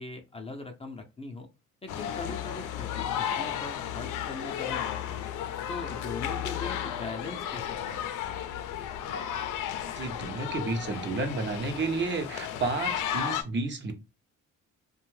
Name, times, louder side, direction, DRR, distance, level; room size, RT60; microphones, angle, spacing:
voice 1, 0.0-1.5 1.8-5.3 5.7-8.4, left 3 dB, 20° left, 4 dB, 0.5 m, -41 dB
sound 1, 1.9-13.4, left 9 dB, 85° left, 0.5 m, -34 dB
voice 2, 9.9-13.9, right 3 dB, 40° right, 6 dB, 0.7 m, -31 dB
2.6 x 2.2 x 3.2 m, 0.27 s
cardioid pair, 90°, 30 cm